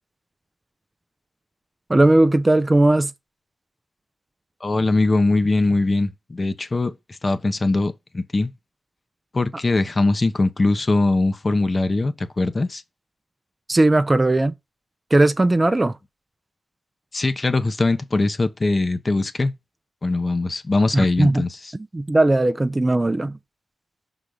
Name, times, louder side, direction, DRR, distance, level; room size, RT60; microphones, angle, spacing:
voice 1, 1.9-3.1 13.7-14.5 15.1-15.9 20.9-21.4 21.9-23.3, right 2 dB, 25° right, 0.6 m, -17 dB
voice 2, 4.6-6.9 7.2-8.5 9.3-12.8 17.1-19.5 20.0-21.7, left 2 dB, 40° left, 0.9 m, -21 dB
5.8 x 4.0 x 5.0 m
cardioid pair, 55°, 0 cm